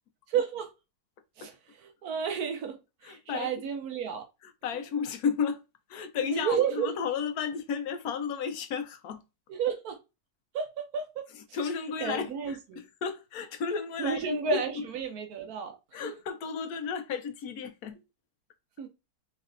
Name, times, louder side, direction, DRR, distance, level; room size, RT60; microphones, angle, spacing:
voice 1, 0.3-0.7 1.4-1.5 1.8-2.8 3.0-4.2 6.3-6.9 9.5-10.0 10.5-11.3 12.0-12.8 14.0-15.8 16.0-16.1 18.8-18.9, right 6 dB, 70° right, 1.1 m, -31 dB
voice 2, 3.0-3.5 4.4-5.6 5.9-9.2 11.5-14.2 14.5-14.6 15.9-18.0, left 6 dB, 75° left, 1.1 m, -33 dB
3.6 x 3.1 x 2.4 m
omnidirectional pair, 1.7 m